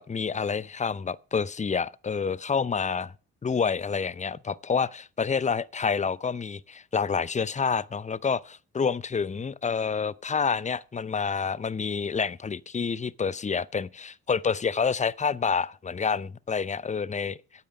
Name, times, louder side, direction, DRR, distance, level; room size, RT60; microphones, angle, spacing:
voice 1, 0.0-3.1 3.4-17.4, left 6 dB, 20° left, 0.5 m, -28 dB
8.9 x 8.7 x 4.8 m
hypercardioid pair, 45°, 38 cm